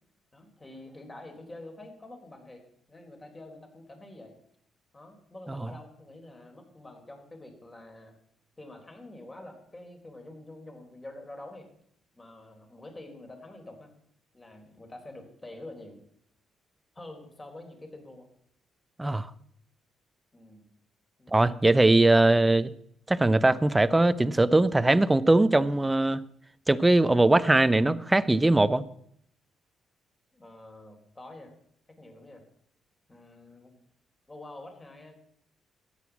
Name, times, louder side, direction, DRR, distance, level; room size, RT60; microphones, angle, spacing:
voice 1, 0.3-4.4 4.9-8.2 8.6-11.7 12.1-13.9 14.3-16.0 16.9-18.3 20.3-20.7 21.2-21.4 30.3-31.5 32.0-32.4 33.1-33.7 34.3-35.1, left 2 dB, 20° left, 4.2 m, -47 dB
voice 2, 21.3-22.7 23.1-26.2 26.7-28.8, right 2 dB, 15° right, 0.7 m, -21 dB
13.5 x 9.9 x 7.3 m
cardioid pair, 90°, 0 cm